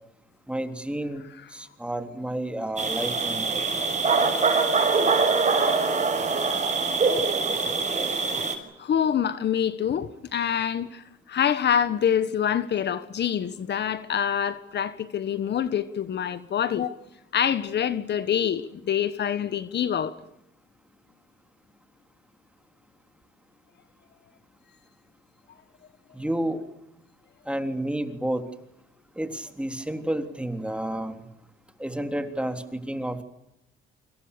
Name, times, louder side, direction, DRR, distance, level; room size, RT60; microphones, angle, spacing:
voice 1, 0.5-1.2 1.5-3.6 26.1-26.6 27.5-28.5 29.2-31.2 31.8-33.2, right 1 dB, 5° right, 3.7 m, -30 dB
sound 1, 2.8-8.5, right 4 dB, 35° right, 6.6 m, -23 dB
voice 2, 8.8-17.0 17.3-20.2, left 8 dB, 60° left, 1.5 m, -26 dB
29.5 x 26.5 x 6.9 m
cardioid pair, 90°, 20 cm